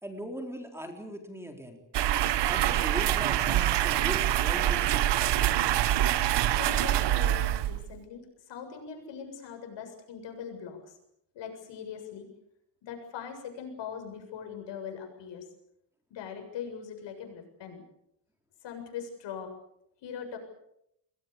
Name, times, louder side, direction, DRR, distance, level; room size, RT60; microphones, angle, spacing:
voice 1, 0.0-1.8 2.5-5.4, equal, 5° right, 4 dB, 3.9 m, -39 dB
sound 1, 1.9-8.0, right 12 dB, 70° right, 1.3 m, -25 dB
voice 2, 6.5-11.0 11.3-12.3 12.8-15.5 16.1-17.8 18.6-19.5 20.0-20.4, left 7 dB, 75° left, 5 dB, 7.5 m, -41 dB
29.5 x 21.5 x 7.1 m, 0.78 s
cardioid pair, 140°, 44 cm